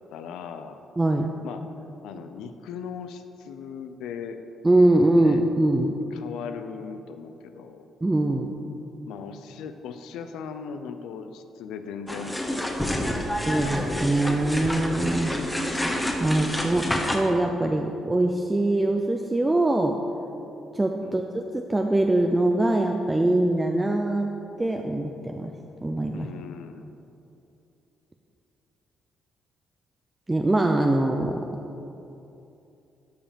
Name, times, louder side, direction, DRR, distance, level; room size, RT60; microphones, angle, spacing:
voice 1, 0.1-0.8 1.4-1.6 2.0-4.4 5.2-5.4 6.1-7.9 9.1-13.3 21.0-21.3 26.1-26.8, left 6 dB, 90° left, 8 dB, 0.6 m, -38 dB
voice 2, 1.0-1.3 4.6-5.9 8.0-8.5 13.5-15.3 16.2-20.0 20.7-24.3 24.6-25.5 25.8-26.3 30.3-31.5, right 1 dB, 15° right, 3 dB, 0.5 m, -23 dB
sound 1, 12.1-17.2, left 1 dB, 10° left, 1.1 m, -28 dB
12.5 x 5.0 x 5.2 m, 2.8 s
cardioid pair, 90°, 0 cm